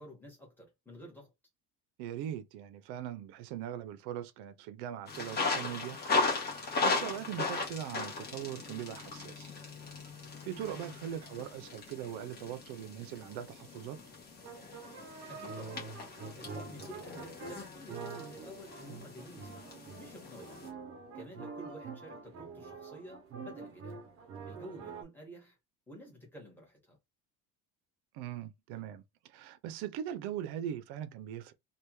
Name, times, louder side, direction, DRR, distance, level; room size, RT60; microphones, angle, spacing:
voice 1, 0.0-1.3 15.3-15.8 16.4-20.6 21.1-24.0 24.5-25.6 25.9-27.0, equal, 5° left, 1.5 m, -51 dB
voice 2, 2.0-6.0 6.4-9.5 10.5-14.0 28.1-31.5, right 10 dB, 85° right, 0.7 m, -41 dB
sound 1, 5.1-20.7, left 3 dB, 25° left, 1.3 m, -38 dB
sound 2, 7.0-7.6 7.9-8.6 9.0-9.1 9.3-9.4 9.6-11.6 12.0-13.3 13.8-13.9 14.4-25.0, right 5 dB, 35° right, 0.7 m, -46 dB
3.4 x 2.4 x 3.1 m
cardioid pair, 175°, 38 cm